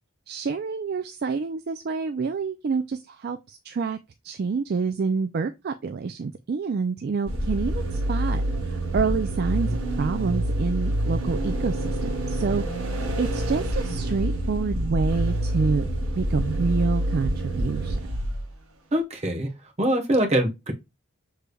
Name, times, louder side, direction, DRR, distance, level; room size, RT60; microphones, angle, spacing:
voice 1, 0.3-4.0 4.2-9.7 10.0-15.9 16.2-18.0, right 5 dB, 50° right, 0.3 m, -28 dB
sound 1, 7.3-18.5, right 1 dB, 85° right, 1.1 m, -27 dB
voice 2, 18.9-19.5 19.8-20.7, right 1 dB, 30° right, 1.0 m, -23 dB
6.7 x 3.2 x 2.3 m
head